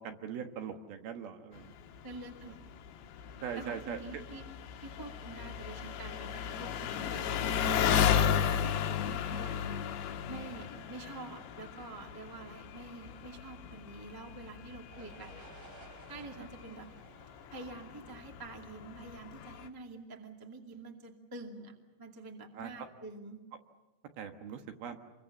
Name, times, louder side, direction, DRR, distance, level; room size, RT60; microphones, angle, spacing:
voice 1, 0.0-1.7 3.4-4.2 10.5-10.8 16.2-16.5 22.5-22.7 24.2-25.0, right 8 dB, 70° right, 6 dB, 3.1 m, -41 dB
Engine, 1.6-19.7, left 8 dB, 85° left, 3.4 m, -35 dB
voice 2, 2.0-2.6 3.5-4.5 4.8-9.6 10.3-15.5 16.1-16.9 17.5-23.4, right 3 dB, 10° right, 2 dB, 1.2 m, -47 dB
sound 1, 14.9-18.8, right 3 dB, 85° right, 6.1 m, -56 dB
27.0 x 23.5 x 7.1 m, 1.2 s
omnidirectional pair, 4.9 m